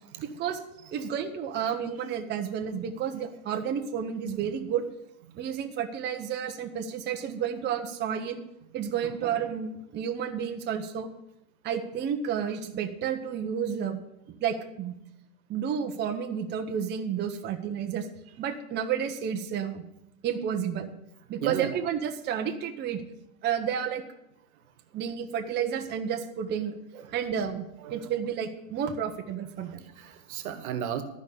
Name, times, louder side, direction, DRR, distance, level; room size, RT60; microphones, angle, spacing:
voice 1, 0.2-0.6 0.9-4.8 5.4-8.4 8.7-11.1 11.6-14.0 14.4-14.9 15.5-18.1 18.4-19.8 20.2-20.9 21.3-23.0 23.4-24.0 24.9-26.8 27.1-29.8, right 8 dB, 25° right, 3 dB, 0.9 m, -31 dB
voice 2, 21.4-21.7 27.0-27.1 27.8-28.1 30.0-31.0, right 9 dB, 75° right, 8 dB, 1.5 m, -34 dB
13.0 x 5.2 x 8.4 m, 0.84 s
supercardioid pair, 130°, 44 cm